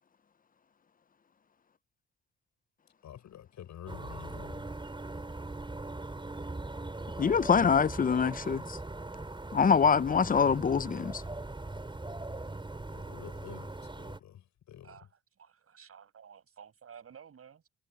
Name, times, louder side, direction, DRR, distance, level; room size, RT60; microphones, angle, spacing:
voice 1, 3.0-4.7 12.9-15.0, left 10 dB, 70° left, 7.1 m, -48 dB
sound 1, 3.9-14.2, right 2 dB, 15° right, 6.1 m, -40 dB
voice 2, 7.2-8.8 9.5-11.2, left 6 dB, 30° left, 0.7 m, -25 dB
voice 3, 15.4-17.7, right 7 dB, 50° right, 7.0 m, -53 dB
cardioid pair, 90°, 30 cm